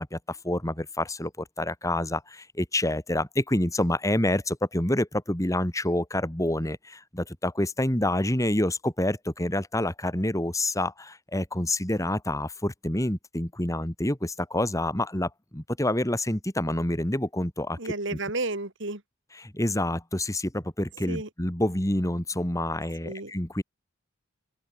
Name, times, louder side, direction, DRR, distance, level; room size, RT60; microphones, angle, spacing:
voice 1, 0.0-18.2 19.4-23.6, left 1 dB, 15° left, 2.7 m, -28 dB
voice 2, 17.8-19.0 21.1-21.3 23.0-23.3, right 2 dB, 65° right, 3.7 m, -32 dB
open air
head